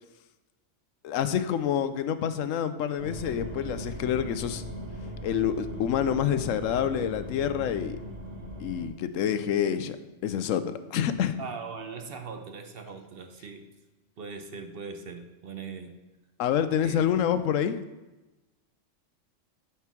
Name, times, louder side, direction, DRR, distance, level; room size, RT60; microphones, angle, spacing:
voice 1, 1.0-4.6 5.2-8.0 8.6-10.0 10.2-11.3 16.4-17.8, left 9 dB, 90° left, 11 dB, 1.0 m, -27 dB
sound 1, 3.0-8.9, right 1 dB, 70° right, 1.7 m, -39 dB
voice 2, 11.4-13.7 14.2-15.9 16.8-17.0, right 5 dB, 55° right, 6 dB, 0.8 m, -40 dB
9.4 x 4.5 x 5.9 m, 1.1 s
omnidirectional pair, 1.3 m